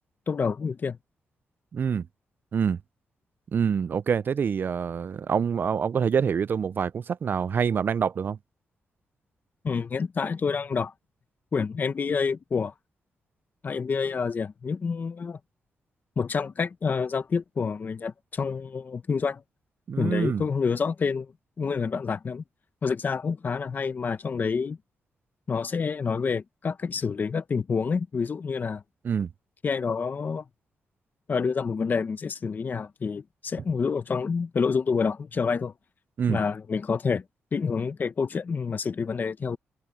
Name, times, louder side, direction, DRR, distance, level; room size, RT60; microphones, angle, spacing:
voice 1, 0.3-1.0 9.6-10.9 11.5-12.7 13.6-15.4 16.2-19.4 20.0-21.3 21.6-22.4 22.8-24.8 25.5-28.8 29.6-30.4 31.3-35.7 36.3-37.2 37.5-39.6, left 5 dB, 45° left, 1.2 m, -28 dB
voice 2, 1.7-2.1 2.5-2.8 3.5-8.4 19.9-20.4 29.0-29.3 36.2-36.4, right 7 dB, 50° right, 0.4 m, -26 dB
open air
cardioid pair, 85°, 4 cm